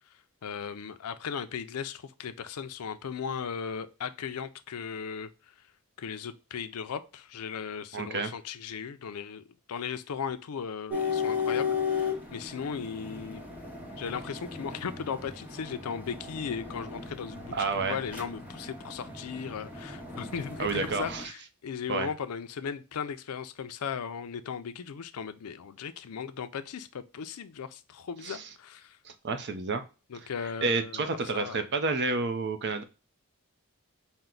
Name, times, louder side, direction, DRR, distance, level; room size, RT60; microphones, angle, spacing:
voice 1, 0.4-5.5 6.0-13.5 14.0-29.0 30.1-31.0 31.3-31.6, left 6 dB, 85° left, 0.5 m, -37 dB
voice 2, 7.9-8.3 17.5-18.0 20.6-21.3 21.9-22.1 28.2-28.5 29.0-29.8 30.1-30.3 30.6-32.8, right 4 dB, 50° right, 0.6 m, -30 dB
sound 1, 10.9-21.2, left 6 dB, 10° right, 0.8 m, -35 dB
4.4 x 2.1 x 3.7 m
head